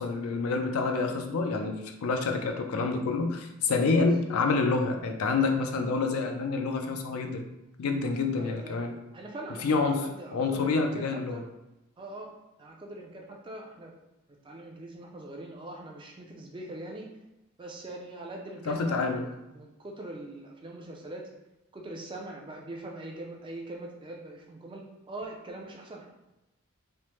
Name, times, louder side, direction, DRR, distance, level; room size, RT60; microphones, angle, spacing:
voice 1, 0.0-7.4 7.8-8.9 9.6-10.1 10.3-11.4 18.7-19.3, left 4 dB, 85° left, 5 dB, 0.4 m, -27 dB
voice 2, 8.4-8.8 9.1-11.4 12.0-12.3 12.6-13.9 14.4-17.1 17.6-21.3 21.7-26.1, right 1 dB, 20° right, 0 dB, 0.3 m, -42 dB
3.2 x 2.0 x 2.9 m, 0.94 s
head